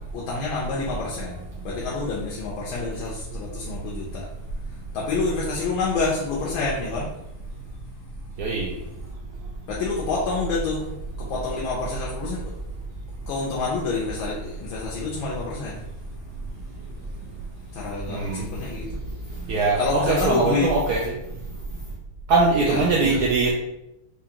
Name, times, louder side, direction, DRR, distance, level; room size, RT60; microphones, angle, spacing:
voice 1, 0.1-4.3 4.9-7.1 9.7-12.5 13.3-15.8 17.7-18.9 19.8-20.7 22.6-23.2, left 3 dB, 90° left, -4 dB, 1.5 m, -28 dB
voice 2, 8.4-8.7 18.1-18.4 19.5-21.0 22.3-23.5, right 3 dB, 75° right, -3 dB, 0.9 m, -21 dB
4.8 x 2.4 x 2.8 m, 0.87 s
omnidirectional pair, 2.2 m